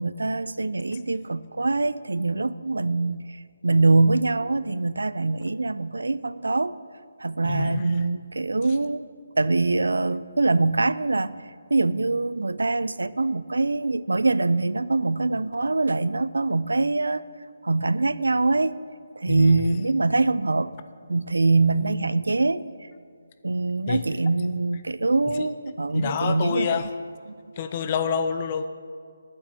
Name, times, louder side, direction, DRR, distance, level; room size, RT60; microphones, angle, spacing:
voice 1, 0.0-3.4 3.6-6.7 7.2-9.1 9.4-11.3 11.7-17.2 17.6-18.8 19.2-20.7 21.1-22.6 23.4-26.8, right 3 dB, 80° right, 17 dB, 0.4 m, -23 dB
voice 2, 7.4-8.1 19.3-19.8 23.9-24.0 25.3-25.5 25.9-26.9 27.6-28.7, left 7 dB, 30° left, 10 dB, 0.5 m, -28 dB
9.2 x 7.3 x 8.3 m, 2.2 s
figure-of-eight pair, 155°, 0 cm